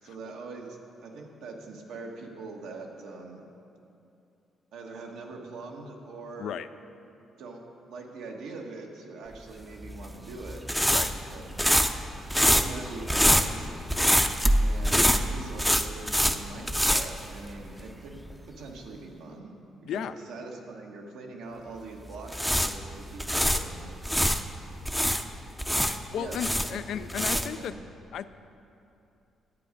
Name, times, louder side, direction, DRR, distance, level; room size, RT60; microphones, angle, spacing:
voice 1, 0.0-3.4 4.7-6.5 7.4-7.6 7.9-10.6 11.1-11.7 12.4-13.7 14.6-18.2 18.5-19.5 19.8-23.9 26.2-27.0 27.3-27.8, right 3 dB, 85° right, 1 dB, 1.3 m, -42 dB
sound 1, 9.8-17.9 18.2-18.3 22.1-24.4 24.9-27.7, equal, ahead, 0.5 m, -25 dB
voice 2, 25.8-27.7 28.1-28.2, left 9 dB, 75° left, 12 dB, 0.3 m, -34 dB
10.5 x 8.3 x 5.2 m, 2.7 s
cardioid pair, 90°, 0 cm